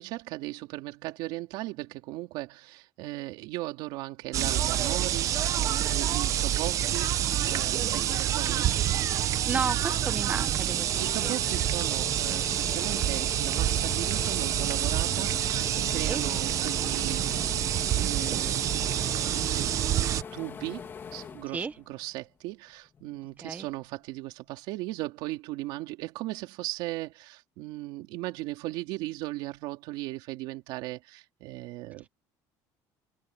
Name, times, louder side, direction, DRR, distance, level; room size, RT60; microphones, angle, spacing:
voice 1, 0.0-7.1 7.4-8.8 11.0-18.7 19.3-19.9 20.3-32.1, right 18 dB, 75° right, 3.3 m, -37 dB
sound 1, 4.3-20.2, right 11 dB, 40° right, 0.8 m, -27 dB
voice 2, 7.7-8.2 9.1-11.4 16.0-16.2 21.5-21.7 23.4-23.7, right 5 dB, 20° right, 1.0 m, -34 dB
sound 2, 9.3-9.4 9.7-22.3 22.7-23.8, left 6 dB, 25° left, 2.6 m, -42 dB
cardioid pair, 150°, 8 cm